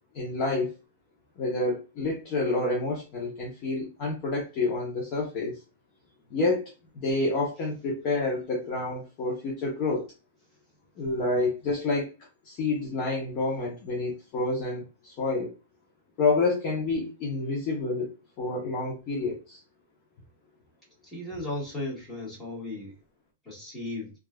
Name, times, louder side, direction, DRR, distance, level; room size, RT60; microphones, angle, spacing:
voice 1, 0.1-0.7 1.4-5.6 6.3-10.1 11.0-12.1 12.4-15.5 16.2-19.6, left 3 dB, 40° left, -3 dB, 0.8 m, -28 dB
voice 2, 21.0-23.0 23.4-24.1, left 2 dB, 10° left, -6 dB, 1.6 m, -36 dB
3.0 x 2.4 x 2.2 m, 0.30 s
hypercardioid pair, 145°, 0 cm